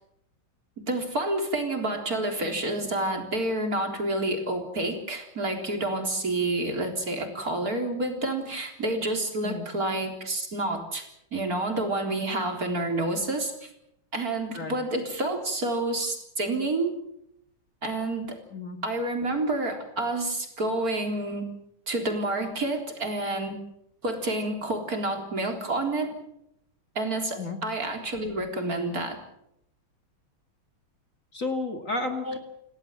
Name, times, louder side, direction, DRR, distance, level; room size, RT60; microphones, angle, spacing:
voice 1, 0.9-11.0 11.3-13.7 14.1-17.0 17.8-18.4 18.8-21.5 21.9-23.6 24.0-26.2 27.0-29.2 32.3-32.4, right 2 dB, 45° right, 3 dB, 4.2 m, -29 dB
voice 2, 31.3-32.4, left 3 dB, 40° left, 5 dB, 2.4 m, -32 dB
28.5 x 17.5 x 7.4 m, 0.78 s
omnidirectional pair, 2.2 m